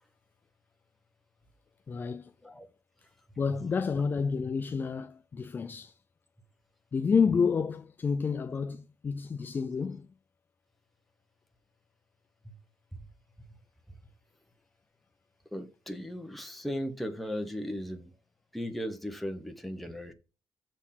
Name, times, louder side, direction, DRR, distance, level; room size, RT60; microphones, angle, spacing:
voice 1, 1.9-2.3 3.4-5.9 6.9-10.1, left 5 dB, 25° left, 0.3 m, -29 dB
voice 2, 15.5-18.1 18.5-20.1, equal, ahead, 1.0 m, -37 dB
7.0 x 4.4 x 5.8 m
cardioid pair, 160°, 7 cm